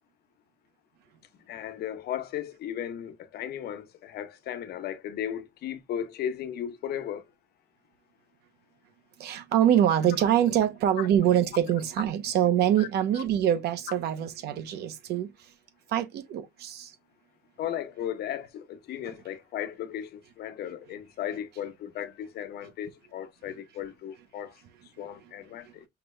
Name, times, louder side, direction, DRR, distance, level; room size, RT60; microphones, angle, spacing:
voice 1, 1.5-7.2 11.0-11.1 12.8-12.9 13.1-13.2 17.6-25.9, left 10 dB, 70° left, 1.0 m, -36 dB
voice 2, 9.2-15.3 15.9-16.9, right 10 dB, 75° right, 0.8 m, -24 dB
5.9 x 2.3 x 3.2 m
cardioid pair, 110°, 17 cm